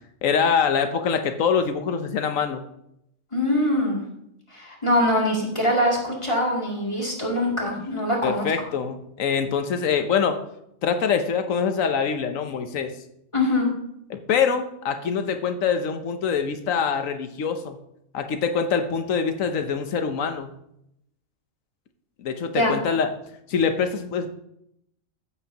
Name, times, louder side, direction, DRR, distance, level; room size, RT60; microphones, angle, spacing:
voice 1, 0.2-2.6 8.2-10.4 10.8-12.9 14.1-17.8 18.1-20.5 22.2-23.1 23.5-24.3, left 6 dB, 75° left, 7 dB, 1.1 m, -24 dB
voice 2, 3.3-4.0 4.5-8.4 13.3-13.7 22.5-22.7, left 1 dB, 20° left, -4 dB, 2.6 m, -23 dB
15.0 x 7.9 x 2.8 m, 0.78 s
omnidirectional pair, 1.4 m